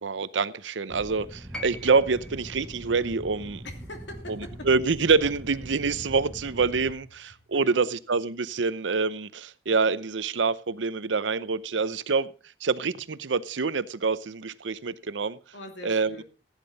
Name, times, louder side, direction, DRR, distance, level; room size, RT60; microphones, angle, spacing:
voice 1, 0.0-3.6 4.7-12.3 12.6-15.4 15.8-16.1, right 4 dB, 90° right, 0.7 m, -26 dB
sound 1, 0.9-6.9, equal, 15° right, 1.0 m, -42 dB
sound 2, 1.5-5.7 6.9-7.0, equal, 5° left, 1.4 m, -46 dB
voice 2, 3.6-4.7 7.5-8.0 15.5-16.2, left 1 dB, 70° left, 2.9 m, -42 dB
15.5 x 9.9 x 4.0 m
head